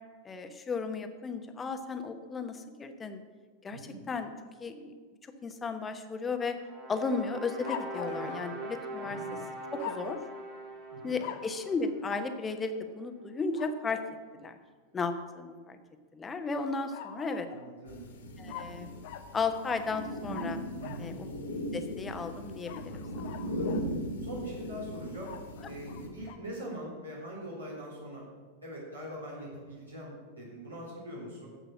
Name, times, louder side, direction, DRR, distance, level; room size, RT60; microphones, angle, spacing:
voice 1, 0.2-3.2 3.6-4.3 4.6-4.9 5.2-6.6 6.9-9.2 9.7-10.2 11.0-14.0 14.4-14.6 14.9-15.8 16.1-17.5 18.4-18.9 19.3-20.6 21.0-21.3 21.7-23.3, left 4 dB, 20° left, 8 dB, 1.0 m, -34 dB
voice 2, 3.7-4.0 8.1-8.3 9.0-9.3 10.9-11.2 17.5-18.1 20.8-21.1 23.4-23.7 24.2-25.3 25.6-28.2 28.6-31.5, equal, 80° right, -6 dB, 3.8 m, -42 dB
sound 1, 6.6-12.8, right 2 dB, 35° right, 2.2 m, -42 dB
sound 2, 7.6-9.2 9.8-10.4 11.2-11.6 12.0-12.3 13.5-14.1 16.5-17.7 18.5-21.1 22.6-23.9 25.2-26.4, left 9 dB, 50° left, 0.7 m, -44 dB
sound 3, 17.9-26.1, equal, 65° left, 2.0 m, -38 dB
10.5 x 7.9 x 6.3 m, 1.5 s
figure-of-eight pair, 90°, 0 cm